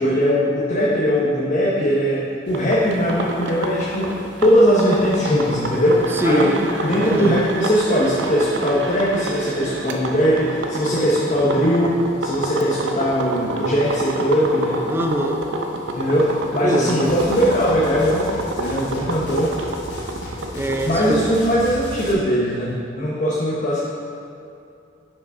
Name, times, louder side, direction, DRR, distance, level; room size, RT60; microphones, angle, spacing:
voice 1, 0.0-6.5 6.8-14.8 15.9-18.3 18.6-19.5 20.8-23.8, equal, 40° left, -5 dB, 0.8 m, -20 dB
sound 1, 2.5-20.8, right 1 dB, 70° right, 0.6 m, -28 dB
voice 2, 6.1-6.6 6.9-7.4 14.8-15.4 16.6-17.0 20.5-21.3, equal, 15° right, 3 dB, 0.5 m, -23 dB
sound 2, 17.0-22.1, left 1 dB, 60° left, 1.1 m, -35 dB
5.9 x 4.9 x 5.3 m, 2.5 s
head